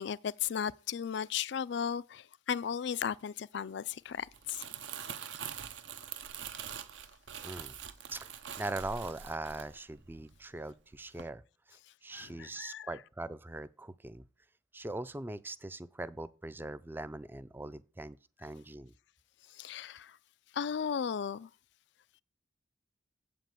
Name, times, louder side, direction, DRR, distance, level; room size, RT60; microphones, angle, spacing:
voice 1, 0.0-4.7 12.1-12.9 19.6-20.1 20.5-21.5, left 8 dB, 65° left, 0.4 m, -35 dB
Crumpling crinkling, 4.2-10.6 10.9-11.2, right 8 dB, 75° right, 0.8 m, -44 dB
voice 2, 7.4-7.8 8.1-8.3 8.6-11.4 11.7-14.2 14.7-18.9, right 2 dB, 10° right, 0.4 m, -41 dB
8.1 x 5.2 x 7.6 m
head